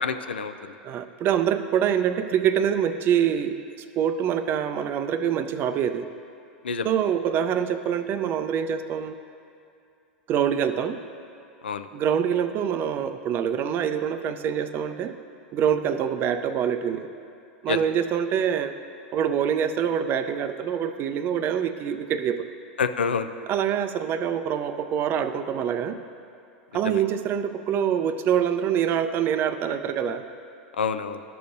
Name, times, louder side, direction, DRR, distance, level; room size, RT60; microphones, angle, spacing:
voice 1, 0.0-0.5 6.6-6.9 11.6-11.9 17.7-17.8 22.8-23.3 26.8-27.0 30.8-31.2, left 6 dB, 90° left, 10 dB, 0.4 m, -27 dB
voice 2, 0.8-3.5 4.0-6.1 6.8-9.1 10.3-11.0 11.9-15.1 15.5-17.1 17.6-18.8 19.1-22.5 23.5-26.0 26.7-30.2, right 8 dB, 40° right, 10 dB, 0.4 m, -25 dB
12.5 x 6.7 x 2.6 m, 2.5 s
hypercardioid pair, 95°, 6 cm